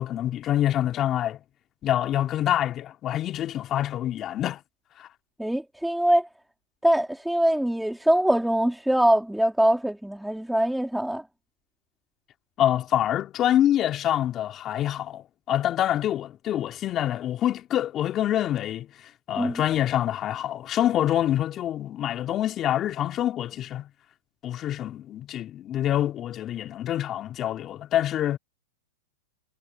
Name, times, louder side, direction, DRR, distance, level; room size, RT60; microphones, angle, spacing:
voice 1, 0.0-1.4 1.8-4.6 5.0-5.1 12.6-18.9 19.3-23.9 24.4-28.4, left 12 dB, 30° left, 3.2 m, -26 dB
voice 2, 5.4-6.3 6.8-11.2 19.4-19.6, right 1 dB, ahead, 3.9 m, -23 dB
hypercardioid pair, 125°, 0 cm